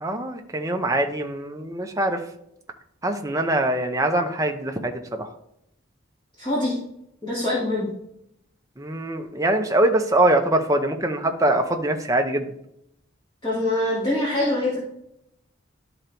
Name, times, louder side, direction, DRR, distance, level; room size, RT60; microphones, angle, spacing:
voice 1, 0.0-2.2 3.0-5.3 8.8-12.5, right 1 dB, 15° right, 4 dB, 0.7 m, -23 dB
voice 2, 6.4-6.8 7.2-7.9 13.4-14.8, left 1 dB, 20° left, -8 dB, 2.0 m, -24 dB
11.5 x 4.0 x 4.5 m, 0.76 s
head